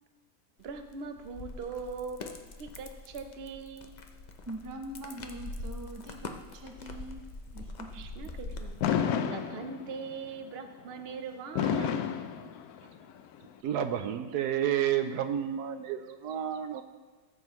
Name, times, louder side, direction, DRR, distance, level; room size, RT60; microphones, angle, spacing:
sound 1, 0.6-8.9, left 2 dB, 90° left, 0.3 m, -44 dB
voice 1, 0.6-3.9 7.9-8.8 9.2-12.3, right 4 dB, 55° right, 7 dB, 0.7 m, -41 dB
voice 2, 4.5-7.3 7.5-8.3, right 1 dB, 30° right, 3 dB, 0.3 m, -43 dB
Fireworks, 8.8-10.1 11.6-13.1, left 8 dB, 70° left, 1.0 m, -30 dB
voice 3, 13.6-16.8, right 10 dB, 75° right, 9 dB, 1.1 m, -30 dB
15.0 x 7.4 x 3.1 m, 1.5 s
omnidirectional pair, 1.8 m